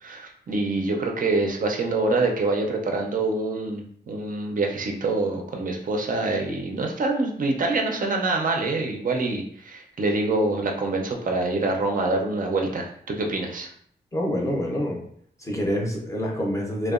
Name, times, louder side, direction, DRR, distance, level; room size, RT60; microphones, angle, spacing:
voice 1, 0.0-13.7, right 2 dB, 50° right, 2 dB, 0.4 m, -25 dB
voice 2, 14.1-15.0 15.4-16.9, equal, 15° left, -2 dB, 0.5 m, -26 dB
2.7 x 2.1 x 2.4 m, 0.64 s
wide cardioid pair, 155°, 18 cm